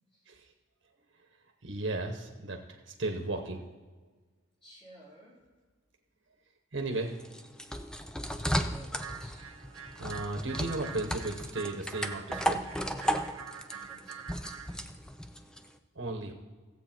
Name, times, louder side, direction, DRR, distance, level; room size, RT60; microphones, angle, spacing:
voice 1, 1.6-3.6 6.7-7.1 10.0-12.6 15.9-16.3, right 2 dB, 55° right, 4 dB, 1.1 m, -35 dB
voice 2, 4.6-5.4 8.5-9.7 13.4-14.4, right 1 dB, 25° left, -6 dB, 4.2 m, -55 dB
sound 1, 6.9-15.7, equal, 5° left, 0.4 m, -35 dB
sound 2, 9.0-14.8, right 7 dB, 85° right, 0.8 m, -46 dB
16.0 x 8.0 x 4.5 m, 1.4 s
head